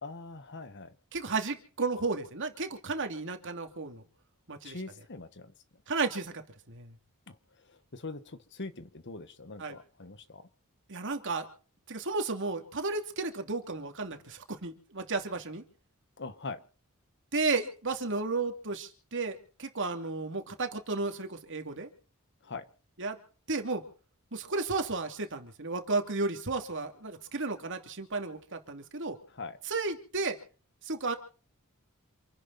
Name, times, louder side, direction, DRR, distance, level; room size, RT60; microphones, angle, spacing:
voice 1, 0.0-0.9 4.6-5.5 7.3-7.4 7.7-10.5 16.2-16.6 22.4-22.6 29.3-29.6, left 3 dB, 55° left, 12 dB, 1.4 m, -42 dB
voice 2, 1.1-4.0 4.5-4.8 5.9-6.3 6.7-6.9 9.6-9.8 10.9-11.5 11.9-15.6 17.3-21.9 23.0-23.2 23.5-23.8 24.3-29.2 29.6-30.4 30.8-31.1, right 3 dB, 60° right, 5 dB, 2.8 m, -33 dB
27.5 x 10.5 x 4.2 m, 0.41 s
head